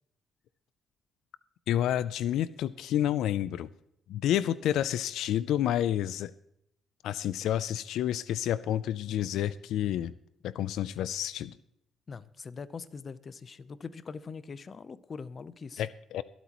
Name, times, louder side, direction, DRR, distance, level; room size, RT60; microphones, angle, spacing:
voice 1, 1.7-3.7 4.1-6.3 7.0-10.1 10.4-11.5 15.8-16.2, left 11 dB, 85° left, 16 dB, 0.4 m, -29 dB
voice 2, 12.1-15.8, left 5 dB, 40° left, 15 dB, 0.7 m, -42 dB
23.5 x 8.3 x 3.0 m, 0.76 s
cardioid pair, 115°, 0 cm